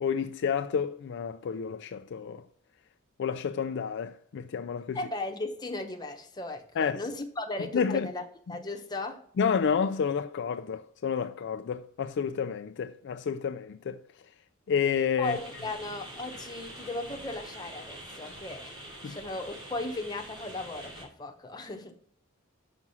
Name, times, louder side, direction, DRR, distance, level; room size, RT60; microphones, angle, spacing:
voice 1, 0.0-2.5 3.2-5.0 6.8-7.0 7.7-8.1 9.4-14.0 14.7-15.4 19.0-19.2, left 6 dB, 55° left, 0.4 m, -30 dB
voice 2, 4.9-8.2 8.5-9.2 15.2-21.9, left 2 dB, 20° left, 1.0 m, -36 dB
sound 1, 15.2-21.0, right 1 dB, 20° right, 2.8 m, -45 dB
6.1 x 5.9 x 5.5 m
head